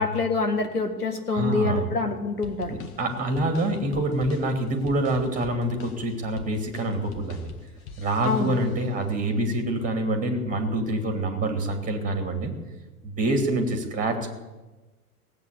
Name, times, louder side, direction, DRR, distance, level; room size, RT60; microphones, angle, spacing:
voice 1, 0.0-2.8 8.2-8.5, left 3 dB, 85° left, 6 dB, 2.0 m, -26 dB
voice 2, 1.3-1.8 2.7-7.5 8.0-12.5 13.0-14.3, right 1 dB, 15° right, 6 dB, 2.8 m, -26 dB
sound 1, 2.4-8.9, left 4 dB, 45° left, 1.8 m, -45 dB
17.5 x 8.3 x 8.4 m, 1.1 s
figure-of-eight pair, 90°, 45 cm